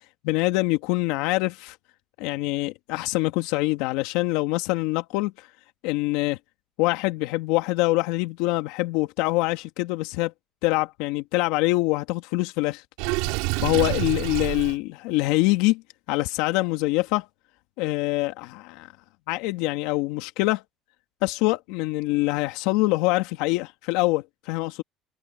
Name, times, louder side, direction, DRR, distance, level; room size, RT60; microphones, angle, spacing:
voice 1, 0.2-1.8 2.2-5.5 5.8-6.4 6.8-10.3 10.6-12.8 13.6-15.8 16.1-17.3 17.8-18.9 19.3-20.6 21.2-24.8, left 20 dB, 80° left, 2.0 m, -24 dB
Water / Sink (filling or washing), 13.0-14.8, right 27 dB, 80° right, 5.1 m, -27 dB
supercardioid pair, 80°, 0 cm